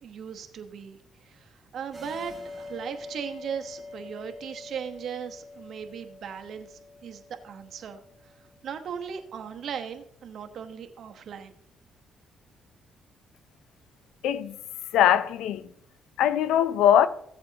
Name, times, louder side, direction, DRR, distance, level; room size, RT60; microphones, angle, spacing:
voice 1, 0.0-8.3 8.6-11.5, right 7 dB, 65° right, 1.1 m, -38 dB
sound 1, 1.9-9.1, left 2 dB, 20° right, 2.7 m, -45 dB
voice 2, 14.2-14.6 14.9-15.7 16.2-17.1, left 10 dB, 90° left, 0.5 m, -21 dB
15.5 x 7.9 x 2.9 m
cardioid pair, 90°, 0 cm